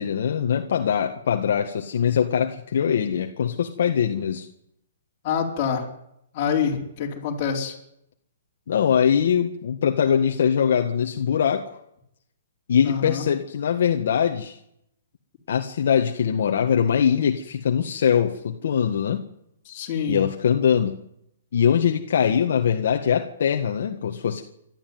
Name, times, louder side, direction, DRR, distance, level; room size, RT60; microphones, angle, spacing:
voice 1, 0.0-4.5 8.7-11.8 12.7-14.6 15.5-19.2 20.1-21.0 21.5-24.4, left 8 dB, 55° left, 3 dB, 1.7 m, -22 dB
voice 2, 5.2-5.9 6.3-7.8 12.8-13.2 19.7-20.2, left 7 dB, 25° left, -1 dB, 4.4 m, -26 dB
29.0 x 12.5 x 9.5 m, 0.78 s
hypercardioid pair, 175°, 0 cm